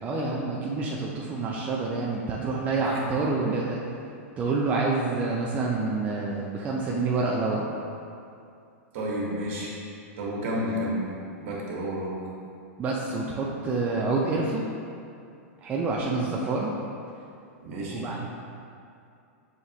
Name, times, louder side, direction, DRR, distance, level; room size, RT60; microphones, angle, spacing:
voice 1, 0.0-3.8 4.4-7.7 12.8-14.6 15.6-16.7 17.9-18.3, right 3 dB, 20° right, -3 dB, 0.4 m, -27 dB
voice 2, 8.9-9.7 10.2-11.0 11.4-12.2 17.6-18.1, equal, 55° right, -4 dB, 1.1 m, -30 dB
6.4 x 2.9 x 2.7 m, 2.5 s
hypercardioid pair, 135°, 8 cm